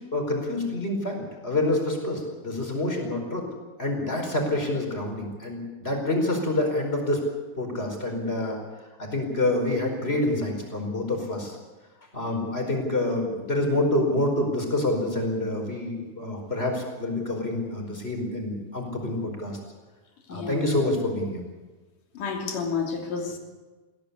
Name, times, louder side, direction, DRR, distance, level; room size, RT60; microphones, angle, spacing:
voice 1, 0.1-3.4 3.8-7.2 7.6-8.6 9.0-11.6 12.1-19.6 20.3-21.4, left 1 dB, 20° left, 2 dB, 5.0 m, -27 dB
voice 2, 20.3-20.7 22.1-23.4, left 5 dB, 90° left, 2 dB, 4.6 m, -30 dB
21.0 x 17.0 x 8.5 m, 1.2 s
omnidirectional pair, 3.6 m